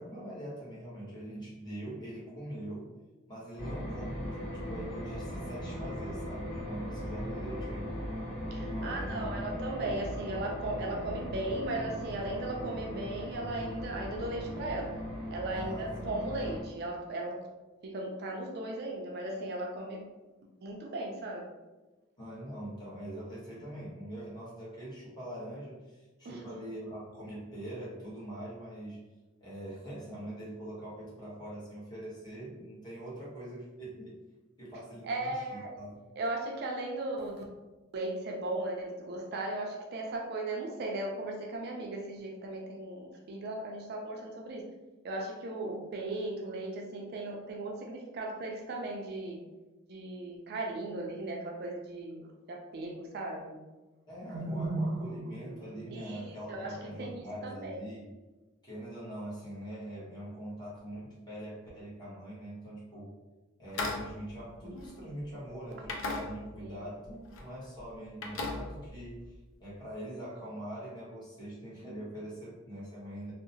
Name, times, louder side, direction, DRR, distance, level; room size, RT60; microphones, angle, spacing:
voice 1, 0.0-2.9 3.3-8.0 8.6-9.5 15.5-15.9 22.2-29.0 29.4-34.2 34.6-36.0 54.1-58.1 58.6-63.2 63.6-69.3 69.6-73.3, right 1 dB, 20° left, -8 dB, 1.0 m, -43 dB
sound 1, 3.6-16.6, equal, 50° left, 1.0 m, -39 dB
voice 2, 8.5-15.0 15.3-17.5 17.8-20.1 20.6-21.5 26.2-26.5 35.0-35.8 36.2-37.4 37.9-44.7 45.0-49.4 49.9-53.6 54.3-57.8 66.6-66.8, right 2 dB, 50° right, 0 dB, 0.4 m, -37 dB
sound 2, 63.7-65.4 65.8-66.8 67.0-67.5 67.8-69.4, left 3 dB, 65° left, 0.4 m, -38 dB
2.7 x 2.0 x 2.7 m, 1.2 s
head